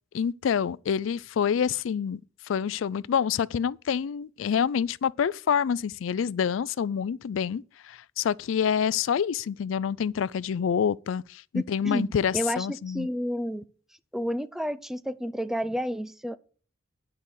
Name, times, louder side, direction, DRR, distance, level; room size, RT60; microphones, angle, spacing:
voice 1, 0.1-13.1, left 7 dB, 80° left, 0.4 m, -27 dB
voice 2, 11.8-13.6 14.1-16.4, equal, ahead, 0.4 m, -30 dB
10.5 x 5.4 x 6.4 m
head